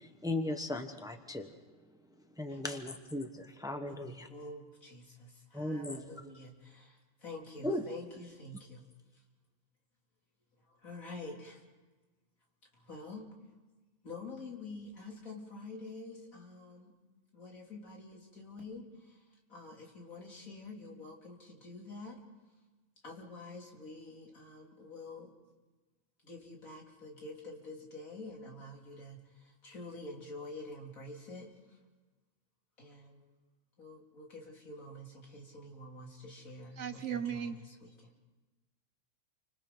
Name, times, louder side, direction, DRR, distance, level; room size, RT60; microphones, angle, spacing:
voice 1, 0.2-1.5 2.4-4.3 5.5-6.0 7.6-7.8, left 1 dB, 5° right, 6 dB, 1.1 m, -36 dB
voice 2, 3.9-8.9 10.7-11.6 12.7-13.3 14.0-16.9 17.3-22.2 23.0-25.3 26.2-31.8 32.8-33.2 33.8-38.1, left 2 dB, 80° left, -1 dB, 3.6 m, -48 dB
voice 3, 36.8-37.5, right 9 dB, 60° right, 10 dB, 1.2 m, -36 dB
29.5 x 25.0 x 4.0 m, 1.2 s
omnidirectional pair, 1.4 m